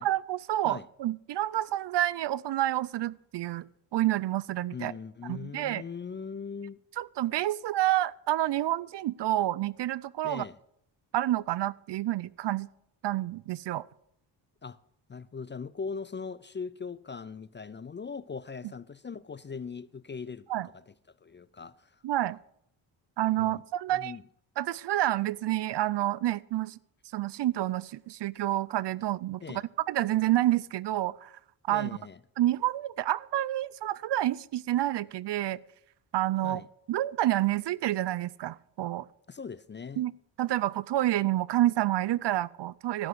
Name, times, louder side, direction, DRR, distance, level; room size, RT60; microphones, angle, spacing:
voice 1, 0.0-3.6 3.9-4.9 5.3-5.8 7.0-10.5 11.1-12.7 13.0-13.9 20.5-20.7 22.0-22.4 23.2-24.2 24.6-26.8 27.1-31.3 31.7-31.9 32.4-35.6 36.1-36.6 36.9-39.1 40.0-40.1 40.4-43.1, right 14 dB, 60° right, 0.5 m, -28 dB
voice 2, 4.7-6.8 10.2-10.6 14.6-14.8 15.1-20.5 20.7-20.8 21.2-22.0 23.4-23.6 23.9-24.2 29.4-29.6 31.7-32.2 36.4-36.7 39.3-40.0, left 5 dB, 25° left, 0.4 m, -40 dB
13.5 x 6.2 x 7.9 m
cardioid pair, 65°, 47 cm